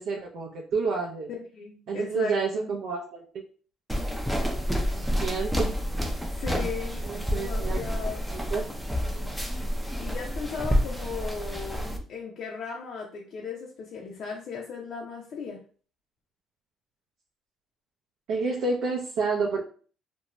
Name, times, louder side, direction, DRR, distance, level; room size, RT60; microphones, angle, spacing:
voice 1, 0.0-1.3 1.9-3.2 5.0-5.7 7.0-7.8 8.3-8.7 18.3-19.6, right 4 dB, 70° right, -2 dB, 0.5 m, -29 dB
voice 2, 1.3-2.7 6.3-7.0 7.3-8.3 10.0-15.6, left 5 dB, 60° left, -2 dB, 0.5 m, -37 dB
sound 1, 3.9-12.0, equal, 5° right, 0.4 m, -29 dB
2.5 x 2.2 x 2.9 m, 0.42 s
cardioid pair, 120°, 0 cm